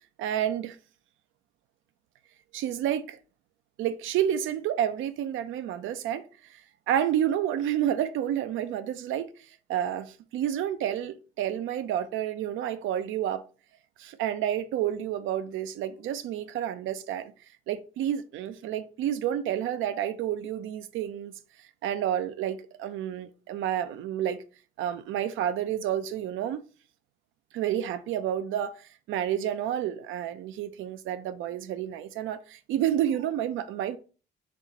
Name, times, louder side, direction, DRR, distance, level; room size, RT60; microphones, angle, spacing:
voice 1, 0.2-0.8 2.5-3.2 3.8-6.6 6.9-9.3 9.7-13.4 14.0-17.3 17.7-21.3 21.8-24.4 24.8-26.6 27.5-34.0, right 10 dB, 85° right, 0.5 m, -30 dB
4.2 x 2.4 x 4.0 m
cardioid pair, 90°, 20 cm